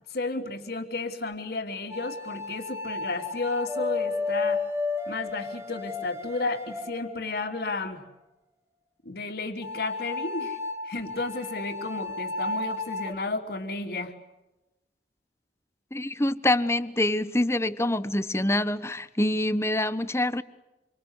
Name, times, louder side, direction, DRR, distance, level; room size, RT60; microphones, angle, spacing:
voice 1, 0.1-4.6 5.1-8.0 9.0-10.6 10.8-14.1, left 3 dB, 60° left, -5 dB, 3.1 m, -32 dB
sound 1, 1.9-7.7 9.6-13.1, left 3 dB, 15° right, 2.1 m, -33 dB
voice 2, 15.9-20.4, left 1 dB, 15° left, 13 dB, 1.2 m, -25 dB
27.5 x 25.5 x 8.2 m, 1.0 s
head